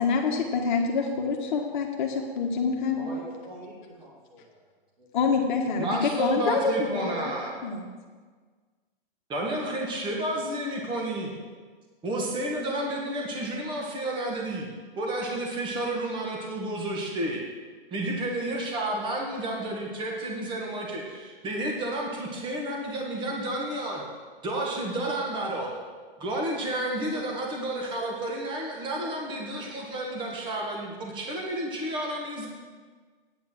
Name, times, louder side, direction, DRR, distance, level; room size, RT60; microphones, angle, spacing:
voice 1, 0.0-3.0 5.1-7.3 7.6-7.9, left 5 dB, 55° left, 0 dB, 1.5 m, -26 dB
voice 2, 2.9-4.6 5.0-5.1, equal, 55° right, -6 dB, 3.1 m, -43 dB
voice 3, 5.8-7.6 9.3-11.3 12.0-14.7 14.9-17.4 17.9-24.0 24.4-25.7 26.2-32.5, right 1 dB, 15° right, -1 dB, 1.5 m, -31 dB
9.3 x 8.6 x 6.0 m, 1.5 s
hypercardioid pair, 155°, 29 cm